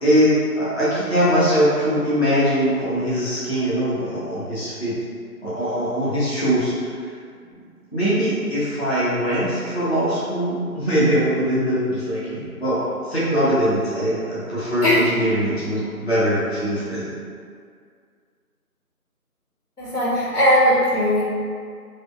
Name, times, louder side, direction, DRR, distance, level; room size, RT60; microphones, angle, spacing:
voice 1, 0.0-5.0 5.4-6.7 7.9-17.0, equal, 45° left, -11 dB, 0.6 m, -21 dB
voice 2, 19.8-21.2, equal, 80° left, -7 dB, 1.0 m, -18 dB
2.5 x 2.1 x 2.2 m, 2.2 s
figure-of-eight pair, 165°, 46 cm